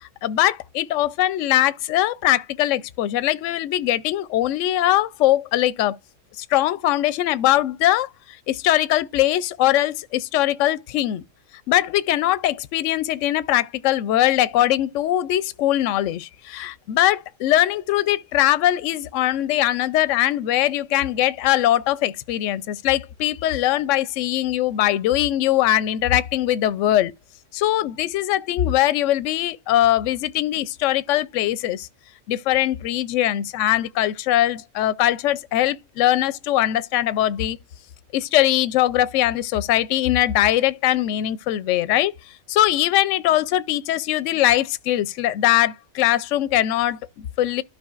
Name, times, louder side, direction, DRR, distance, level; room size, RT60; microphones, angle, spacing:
voice 1, 0.0-6.0 6.4-8.1 8.5-11.2 11.7-27.1 27.5-31.9 32.3-37.6 38.1-42.1 42.5-47.6, left 13 dB, 70° left, 0.9 m, -21 dB
13.0 x 5.5 x 2.4 m
omnidirectional pair, 1.5 m